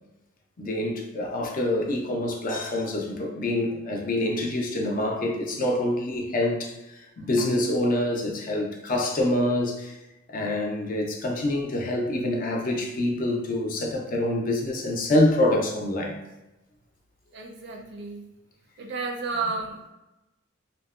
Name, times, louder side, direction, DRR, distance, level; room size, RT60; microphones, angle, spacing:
voice 1, 0.6-9.9 10.3-16.2, left 1 dB, 40° left, 1 dB, 0.4 m, -26 dB
voice 2, 17.3-18.3 18.8-19.9, right 4 dB, 55° right, 1 dB, 0.4 m, -32 dB
2.8 x 2.0 x 2.3 m, 0.97 s
head